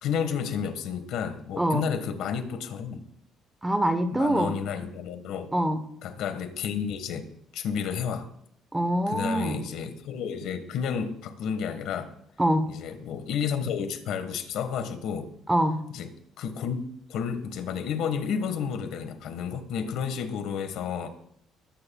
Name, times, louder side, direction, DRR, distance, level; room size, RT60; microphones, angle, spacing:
voice 1, 0.0-3.0 4.1-5.5 6.0-7.3 7.5-8.3 9.1-12.1 12.7-15.3 15.9-16.8 17.1-21.1, left 7 dB, 75° left, 8 dB, 1.6 m, -31 dB
voice 2, 3.6-4.6 5.5-5.8 8.7-9.6 12.4-12.7 15.5-15.8, right 1 dB, 10° right, 10 dB, 1.1 m, -24 dB
21.0 x 10.5 x 2.4 m, 0.73 s
cardioid pair, 110°, 0 cm